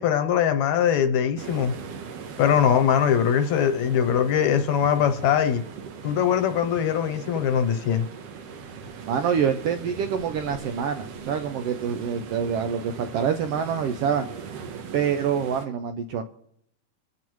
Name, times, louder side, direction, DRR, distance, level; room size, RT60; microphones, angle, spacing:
voice 1, 0.0-1.7 2.4-5.6 6.0-8.1, left 8 dB, 75° left, 2.1 m, -22 dB
sound 1, 1.4-15.7, right 6 dB, 65° right, 1.9 m, -40 dB
voice 2, 9.1-14.3 14.9-16.2, right 7 dB, 85° right, 1.3 m, -26 dB
24.5 x 8.5 x 3.1 m
omnidirectional pair, 3.4 m